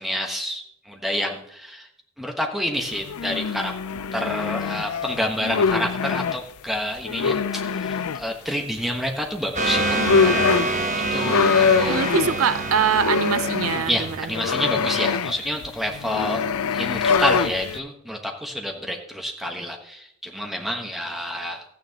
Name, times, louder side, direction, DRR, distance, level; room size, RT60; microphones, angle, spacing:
voice 1, 0.0-1.9 2.2-3.7 4.1-10.5 11.1-12.0 13.9-16.4 16.7-21.6, equal, ahead, 1.2 m, -28 dB
sound 1, 2.8-6.4 7.1-8.2 9.6-9.7 9.9-17.8, left 5 dB, 80° left, 0.5 m, -24 dB
sound 2, 9.6-15.0, right 2 dB, 35° right, 0.9 m, -27 dB
voice 2, 11.9-14.8, right 6 dB, 75° right, 0.5 m, -24 dB
13.5 x 9.3 x 3.0 m
head